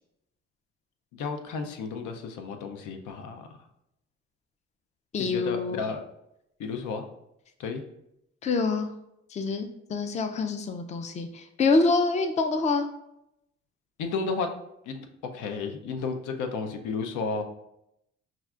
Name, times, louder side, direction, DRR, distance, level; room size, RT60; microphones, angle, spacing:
voice 1, 1.1-3.5 5.2-6.0 6.6-7.0 7.6-7.8 14.0-14.5 14.9-15.1 15.3-17.4, left 4 dB, 80° left, 6 dB, 0.5 m, -32 dB
voice 2, 5.1-5.8 8.4-8.9 9.3-12.9, left 3 dB, 25° left, 8 dB, 0.3 m, -26 dB
5.6 x 2.4 x 2.3 m, 0.82 s
cardioid pair, 90°, 30 cm